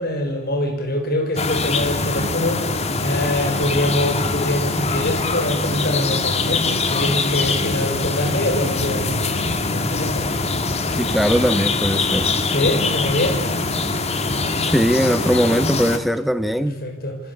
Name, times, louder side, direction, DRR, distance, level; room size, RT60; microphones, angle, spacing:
voice 1, 0.0-10.3 12.5-13.4 16.6-17.2, left 1 dB, 45° left, 5 dB, 5.8 m, -24 dB
sound 1, 1.4-16.0, left 3 dB, 30° left, 2.1 m, -23 dB
voice 2, 10.9-12.3 14.6-16.8, equal, ahead, 11 dB, 1.3 m, -20 dB
28.0 x 25.5 x 8.2 m, 0.99 s
head